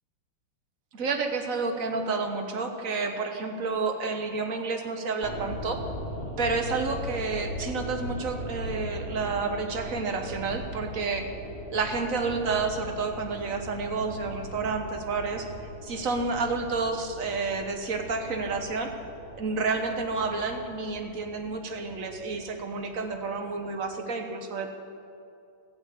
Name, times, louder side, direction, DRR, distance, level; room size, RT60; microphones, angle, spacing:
voice 1, 0.9-5.8 6.4-11.3 11.7-15.5 15.8-18.9 19.3-24.8, right 4 dB, 50° right, 5 dB, 1.2 m, -30 dB
sound 1, 5.2-23.4 23.7-23.8, equal, 35° left, 1.6 m, -40 dB
14.0 x 8.7 x 8.3 m, 2.5 s
omnidirectional pair, 2.3 m